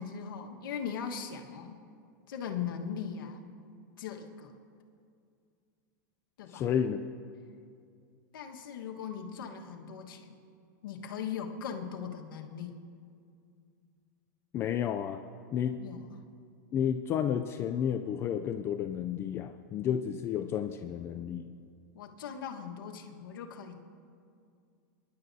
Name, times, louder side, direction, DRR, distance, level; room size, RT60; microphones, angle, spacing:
voice 1, 0.0-1.8 2.3-3.4 4.0-4.5 6.4-6.6 8.3-10.4 10.8-12.7 15.8-16.0 21.9-23.8, left 7 dB, 85° left, 2 dB, 1.4 m, -39 dB
voice 2, 6.5-7.0 14.5-15.2 15.5-15.8 16.7-21.5, left 9 dB, 20° left, 7 dB, 0.3 m, -31 dB
26.5 x 11.0 x 2.7 m, 2.3 s
supercardioid pair, 155°, 11 cm